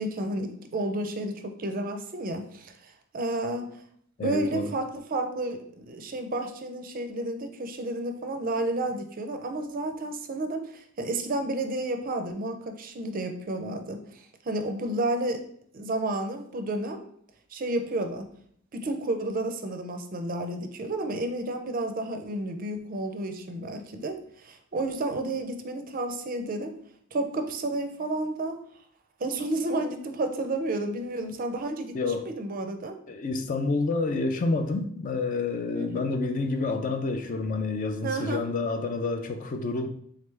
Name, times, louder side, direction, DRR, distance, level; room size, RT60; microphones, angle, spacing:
voice 1, 0.0-3.7 4.2-15.4 15.7-17.0 17.5-18.3 18.7-26.7 27.1-28.6 29.2-33.0 35.7-36.0 38.0-38.4, right 2 dB, 40° right, 6 dB, 0.4 m, -31 dB
voice 2, 4.2-4.7 31.9-32.3 33.1-39.9, left 3 dB, 40° left, 7 dB, 0.4 m, -28 dB
3.7 x 3.2 x 3.3 m, 0.66 s
head